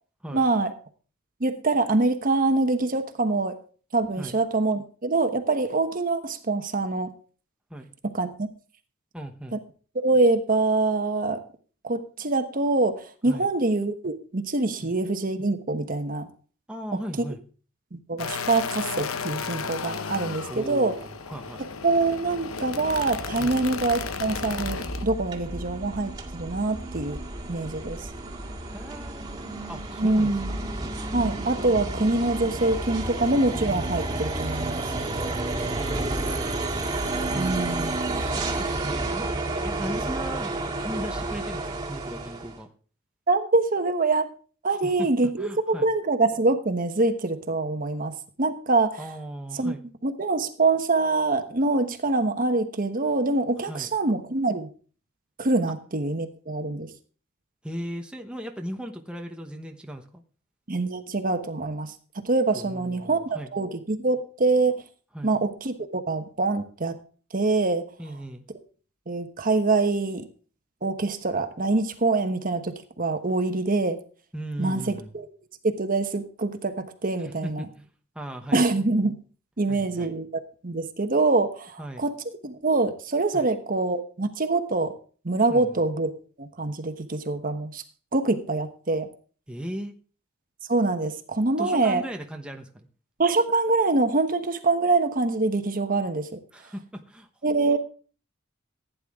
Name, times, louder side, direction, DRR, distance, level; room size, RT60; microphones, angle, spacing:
voice 1, 0.3-0.7 1.4-3.6 3.9-7.1 8.1-8.5 9.5-9.6 9.9-11.4 11.8-16.3 17.9-20.9 21.8-27.2 27.5-28.1 30.0-30.5 31.1-34.9 37.4-38.0 43.3-44.3 44.6-48.1 48.4-49.0 49.5-49.7 50.0-54.7 55.4-56.9 60.7-61.9 62.2-63.2 63.5-64.8 65.2-67.0 67.3-67.8 69.1-70.3 70.8-74.0 74.6-75.3 75.8-77.7 78.5-79.2 79.6-80.3 80.6-82.1 82.4-84.9 85.2-86.1 86.4-87.8 88.1-89.1 90.7-92.0 93.2-96.4 97.4-97.8, right 3 dB, 40° right, 7 dB, 1.2 m, -25 dB
voice 2, 9.1-9.6 13.3-13.5 14.8-14.9 16.7-17.4 20.5-21.6 23.4-23.6 28.7-30.3 35.5-36.6 37.3-37.6 38.1-39.3 39.6-40.5 40.8-42.7 44.7-45.1 45.4-45.9 49.0-49.8 53.6-53.9 57.6-60.2 62.5-63.5 65.1-65.3 68.0-68.4 74.3-75.1 77.2-77.9 78.1-78.6 79.7-80.1 81.8-82.0 83.3-83.5 85.5-85.8 89.5-89.9 91.6-92.9 96.5-97.8, right 1 dB, 5° right, 3 dB, 1.0 m, -37 dB
sound 1, 18.2-25.1, left 5 dB, 90° left, 1.0 m, -34 dB
sound 2, 22.8-42.6, right 2 dB, 20° right, 2.0 m, -31 dB
15.5 x 9.6 x 3.6 m, 0.40 s
head